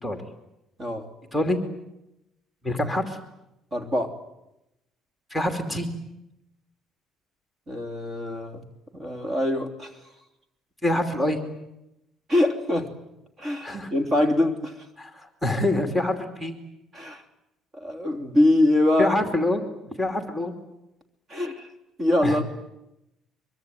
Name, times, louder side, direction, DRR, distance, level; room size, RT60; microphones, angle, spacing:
voice 1, 2.6-3.2 5.3-5.9 10.8-11.4 13.6-13.9 15.0-16.6 19.0-20.5 22.2-22.4, left 1 dB, ahead, 5 dB, 2.8 m, -26 dB
voice 2, 3.7-4.1 7.7-8.6 8.9-9.9 12.3-12.9 13.4-14.7 16.9-17.2 17.7-19.2 21.3-21.7 22.0-22.4, left 1 dB, 30° right, 7 dB, 3.1 m, -23 dB
24.0 x 23.5 x 9.4 m, 0.88 s
cardioid pair, 135°, 0 cm